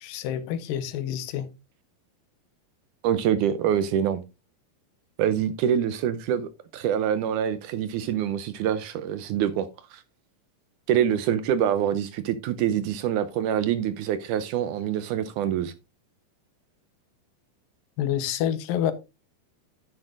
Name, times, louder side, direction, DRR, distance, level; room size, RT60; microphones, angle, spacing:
voice 1, 0.0-1.5 18.0-18.9, left 10 dB, 80° left, 2.5 m, -28 dB
voice 2, 3.0-4.2 5.2-10.0 10.9-15.7, right 9 dB, 80° right, 1.9 m, -25 dB
10.5 x 9.7 x 2.5 m
omnidirectional pair, 4.0 m